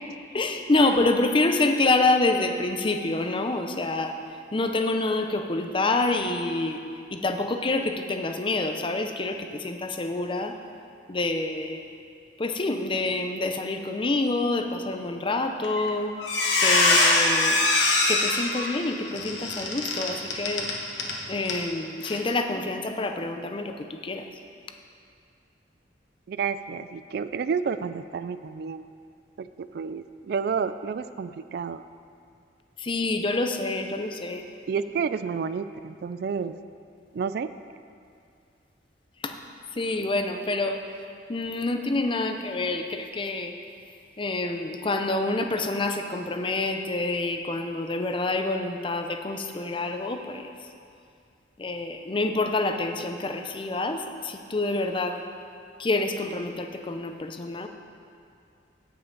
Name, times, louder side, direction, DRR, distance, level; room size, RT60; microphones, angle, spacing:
voice 1, 0.3-4.1 4.5-6.8 7.1-10.5 11.1-11.8 12.4-16.1 16.6-17.6 18.1-20.7 21.3-24.2 32.8-34.4 39.2-39.3 39.7-40.8 41.3-43.5 44.2-50.5 51.6-55.2 55.8-57.7, left 2 dB, 30° left, 5 dB, 0.6 m, -27 dB
Squeak, 15.6-15.9 16.2-21.2 21.5-21.6 22.0-22.2, left 2 dB, 80° left, 1.3 m, -23 dB
voice 2, 26.3-28.8 29.4-31.8 34.7-36.6 37.1-37.5, right 6 dB, 60° right, 13 dB, 0.3 m, -30 dB
16.0 x 5.7 x 3.9 m, 2.3 s
head